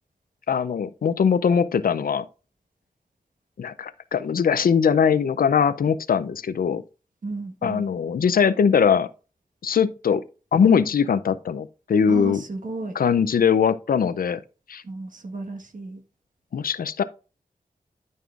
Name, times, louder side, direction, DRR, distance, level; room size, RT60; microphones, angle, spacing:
voice 1, 0.5-2.3 3.6-6.8 7.6-9.1 9.6-10.2 10.5-12.4 13.0-14.4 14.7-14.8 16.5-17.0, left 7 dB, 80° left, 0.5 m, -21 dB
voice 2, 7.2-7.9 12.1-13.0 14.8-16.0, right 3 dB, 65° right, 1.4 m, -33 dB
12.5 x 5.5 x 2.4 m
wide cardioid pair, 105°, 15 cm